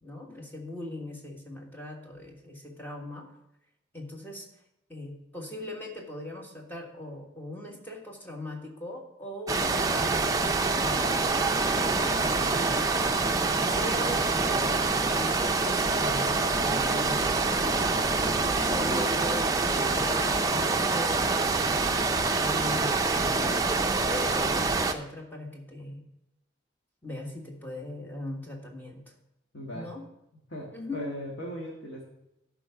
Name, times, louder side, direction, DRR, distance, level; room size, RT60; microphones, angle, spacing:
voice 1, 0.0-3.3 3.9-4.4 4.9-11.2 11.6-13.1 13.7-17.3 18.2-26.0 27.0-29.0 29.7-30.0 30.7-31.1, left 1 dB, 10° left, 0 dB, 1.5 m, -40 dB
sound 1, 9.5-24.9, right 3 dB, 20° right, 0.5 m, -26 dB
voice 2, 29.5-29.9 30.5-32.0, equal, 85° left, -3 dB, 1.6 m, -38 dB
11.5 x 4.7 x 5.8 m, 0.86 s
head